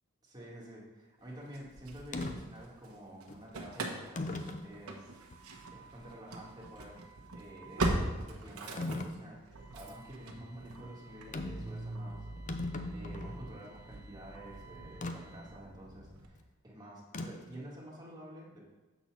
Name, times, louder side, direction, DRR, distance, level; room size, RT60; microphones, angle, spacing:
voice 1, 0.2-5.1 5.7-7.0 7.3-12.3 12.9-18.6, right 1 dB, 20° right, -5 dB, 1.9 m, -50 dB
Engine starting / Slam, 1.5-2.9 3.2-16.3, right 1 dB, 85° right, 1.0 m, -41 dB
sound 1, 2.1-2.4 3.3-3.4 4.1-4.7 5.3-5.4 8.8-9.2 11.3-11.7 12.0-12.1 12.3-13.4 15.0-15.2 17.1-17.5, left 2 dB, 35° left, 0.5 m, -37 dB
7.8 x 4.1 x 6.1 m, 1.1 s
head